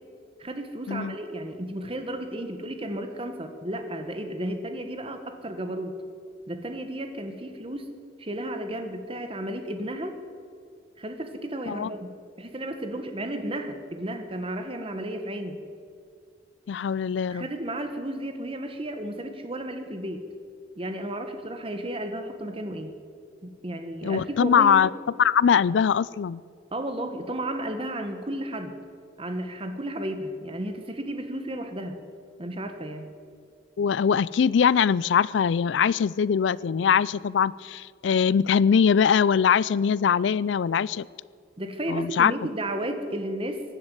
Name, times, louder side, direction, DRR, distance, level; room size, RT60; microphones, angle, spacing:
voice 1, 0.4-6.0 6.5-7.9 8.2-10.1 11.0-12.1 12.4-15.6 17.3-20.3 20.8-22.9 23.4-24.9 26.7-28.8 29.2-32.0 32.4-33.1 41.6-43.6, right 1 dB, 30° right, 7 dB, 1.4 m, -33 dB
voice 2, 16.7-17.5 24.0-24.9 25.2-26.4 33.8-41.1 41.9-42.3, left 7 dB, 80° left, 22 dB, 0.4 m, -22 dB
16.5 x 10.5 x 8.0 m, 2.3 s
head